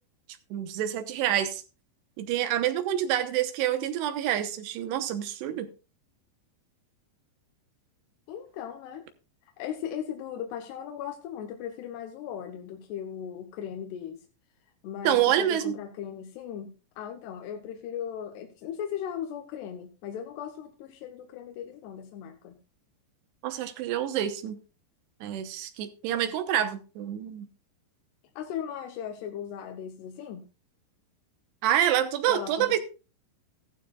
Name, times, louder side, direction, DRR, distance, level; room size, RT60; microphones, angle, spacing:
voice 1, 0.5-1.6 2.2-5.7 15.0-15.7 23.4-24.6 25.2-27.5 31.6-32.8, right 11 dB, 85° right, 9 dB, 3.2 m, -27 dB
voice 2, 8.3-9.1 9.4-14.3 14.8-22.6 28.4-30.4 32.3-32.8, left 9 dB, 85° left, 4 dB, 3.1 m, -37 dB
15.0 x 12.0 x 2.4 m, 0.32 s
omnidirectional pair, 4.7 m